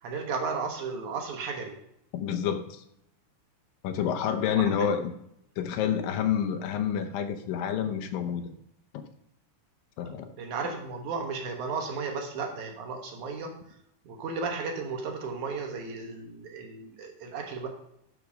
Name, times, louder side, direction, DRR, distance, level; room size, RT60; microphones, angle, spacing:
voice 1, 0.0-1.8 4.5-4.8 10.4-13.5 14.1-17.7, right 4 dB, 65° right, 3 dB, 2.5 m, -34 dB
voice 2, 2.1-2.8 3.8-5.1 5.6-8.5 8.9-9.0 10.0-10.3, left 8 dB, 80° left, 7 dB, 2.5 m, -28 dB
12.0 x 4.6 x 5.2 m, 0.75 s
omnidirectional pair, 4.0 m